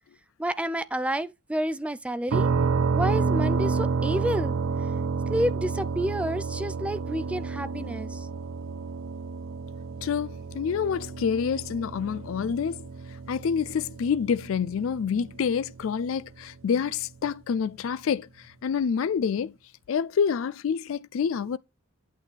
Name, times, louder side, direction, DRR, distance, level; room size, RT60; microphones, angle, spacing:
voice 1, 0.4-2.5 2.9-4.5 5.3-8.3, right 1 dB, 5° right, 0.4 m, -29 dB
sound 1, 2.3-16.0, right 4 dB, 75° right, 0.4 m, -30 dB
voice 2, 10.0-12.8 13.3-19.6 19.9-21.6, left 6 dB, 70° left, 0.4 m, -27 dB
8.7 x 6.2 x 3.3 m
head